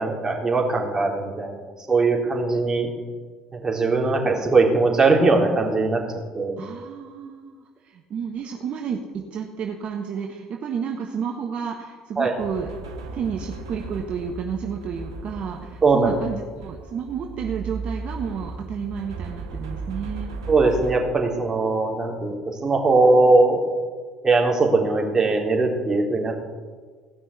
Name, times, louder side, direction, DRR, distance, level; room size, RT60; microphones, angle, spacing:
voice 1, 0.0-2.9 3.6-6.0 6.3-6.6 12.2-12.3 15.8-16.1 20.5-23.6 24.2-26.4, right 3 dB, 25° right, -1 dB, 3.6 m, -20 dB
voice 2, 6.6-12.7 13.1-20.3, right 7 dB, 50° right, 2 dB, 1.4 m, -31 dB
sound 1, 12.4-20.9, right 3 dB, 85° right, 1.4 m, -36 dB
17.5 x 6.1 x 8.4 m, 1.5 s
hypercardioid pair, 65°, 3 cm